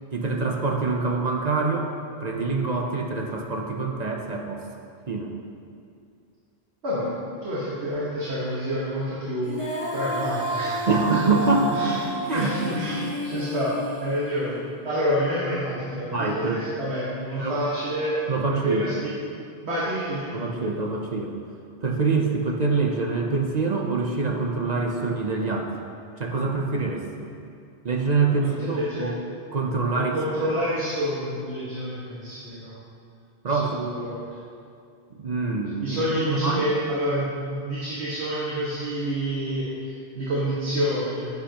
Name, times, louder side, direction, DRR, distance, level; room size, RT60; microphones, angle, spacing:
voice 1, 0.1-1.9 2.2-4.6 5.1-5.3 10.9-11.7 12.3-12.7 16.1-16.7 17.4-17.6 18.3-18.9 20.3-21.4 21.8-25.8 26.2-27.3 27.8-29.1 29.5-30.1 33.4-33.9 35.1-36.0 36.3-36.6, right 3 dB, 45° right, 1 dB, 0.7 m, -25 dB
voice 2, 7.4-11.3 11.7-12.0 12.3-13.7 14.0-18.2 18.5-19.1 19.6-20.5 28.4-29.1 29.9-32.7 33.5-34.4 35.8-41.3, equal, 70° right, -9 dB, 1.8 m, -28 dB
Female singing, 9.4-14.6, right 1 dB, 30° left, 1.4 m, -30 dB
10.5 x 8.3 x 2.9 m, 2.4 s
omnidirectional pair, 1.2 m